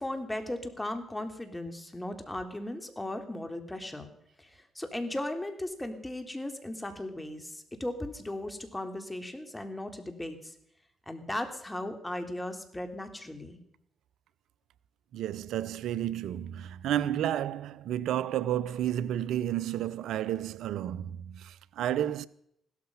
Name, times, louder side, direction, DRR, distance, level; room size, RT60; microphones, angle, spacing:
voice 1, 0.0-4.1 4.4-10.5 11.1-13.6, left 1 dB, 15° left, 3.4 m, -37 dB
voice 2, 15.1-22.3, right 11 dB, 80° right, 0.5 m, -31 dB
16.0 x 13.5 x 5.6 m
hypercardioid pair, 45°, 0 cm